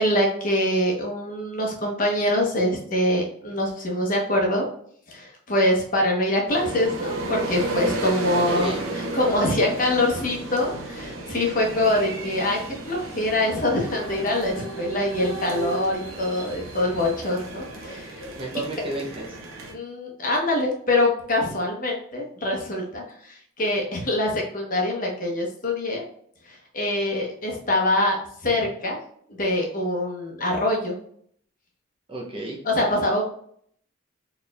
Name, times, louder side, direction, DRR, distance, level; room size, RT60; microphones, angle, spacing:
voice 1, 0.0-4.6 5.1-12.6 12.9-18.2 19.7-26.0 26.5-29.0 29.3-31.0 32.6-33.2, left 1 dB, 40° left, -1 dB, 1.0 m, -24 dB
sound 1, 6.5-19.7, right 2 dB, 80° right, 0.9 m, -33 dB
voice 2, 8.3-8.8 18.4-19.5 32.1-32.6, right 2 dB, 25° right, -1 dB, 0.6 m, -32 dB
4.3 x 3.5 x 2.3 m, 0.63 s
head